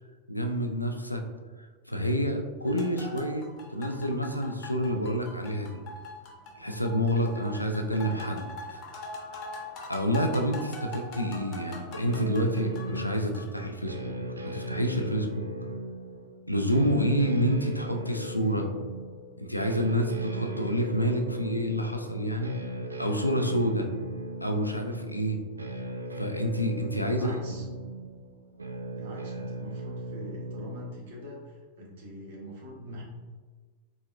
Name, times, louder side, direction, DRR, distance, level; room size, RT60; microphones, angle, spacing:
voice 1, 0.3-1.2 1.9-5.8 6.6-8.8 9.9-14.1 14.4-15.5 16.5-18.7 19.4-22.5 23.0-23.9 24.4-25.4 26.2-27.6, equal, 90° left, 4 dB, 0.4 m, -28 dB
sound 1, 2.6-13.7, left 2 dB, 40° left, 0.9 m, -43 dB
sound 2, 12.1-30.9, right 1 dB, 80° right, 0.3 m, -38 dB
voice 2, 26.9-27.6 28.9-33.0, equal, 55° right, -2 dB, 1.1 m, -44 dB
4.1 x 3.5 x 2.4 m, 1.4 s
figure-of-eight pair, 90°, 0 cm